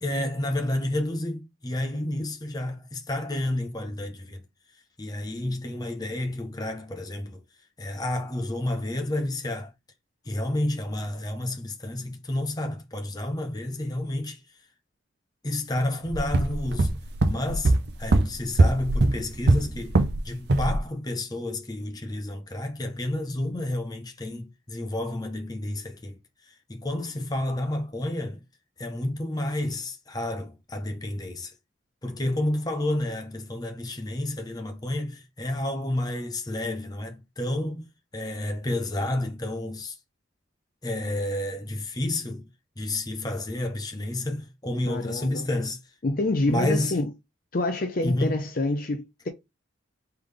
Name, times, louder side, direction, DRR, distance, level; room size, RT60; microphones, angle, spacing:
voice 1, 0.0-4.4 5.0-7.4 7.8-9.7 10.2-14.4 15.4-16.9 17.3-17.7 18.0-20.0 20.2-26.2 26.4-28.4 28.8-31.5 32.0-37.9 38.1-40.0 40.8-42.5 42.8-45.8 46.5-47.0 48.0-48.4, left 1 dB, 20° left, 0.8 m, -30 dB
sound 1, 16.1-20.2 20.5-20.8, right 2 dB, 55° right, 0.5 m, -22 dB
voice 2, 44.9-45.5 46.0-47.1 47.5-49.3, left 2 dB, 45° left, 0.5 m, -27 dB
3.8 x 3.3 x 3.4 m
head